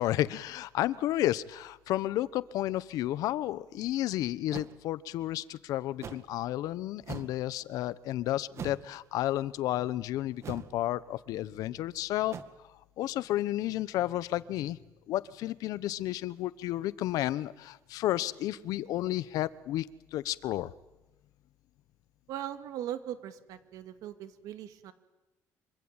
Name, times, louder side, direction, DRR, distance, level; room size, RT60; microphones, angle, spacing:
voice 1, 0.0-12.4 13.0-14.8 15.1-20.7, left 14 dB, 80° left, 17 dB, 1.0 m, -32 dB
sound 1, 4.5-4.7 6.0-6.3 7.0-7.4 8.5-8.9 10.4-10.8 12.3-12.4, right 6 dB, 50° right, 1.9 m, -41 dB
voice 2, 22.3-24.9, right 11 dB, 80° right, 9 dB, 2.3 m, -39 dB
26.5 x 25.0 x 9.1 m, 1.0 s
cardioid pair, 115°, 6 cm